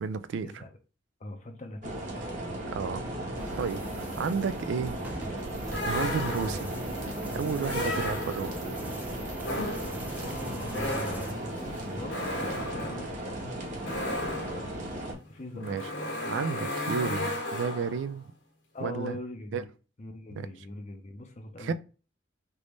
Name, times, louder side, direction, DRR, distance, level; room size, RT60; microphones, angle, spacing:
voice 1, 0.0-0.6 2.7-3.0 3.6-3.8 4.2-5.0 5.9-6.7 7.3-8.5 15.6-15.8 16.2-18.3 18.8-19.2 19.5-19.6 20.3-20.5 21.6-21.7, right 6 dB, 75° right, 0.3 m, -32 dB
voice 2, 1.2-2.2 10.2-13.6 15.2-15.9 18.7-19.7 20.0-21.7, left 1 dB, 40° left, 0.5 m, -41 dB
sound 1, 1.8-15.1, right 1 dB, 40° right, 1.1 m, -36 dB
sound 2, 3.4-11.3, right 1 dB, 10° right, 0.6 m, -42 dB
sound 3, 5.7-6.8 7.6-8.7 9.4-18.1, left 1 dB, 80° left, 1.4 m, -35 dB
3.4 x 2.6 x 3.0 m
head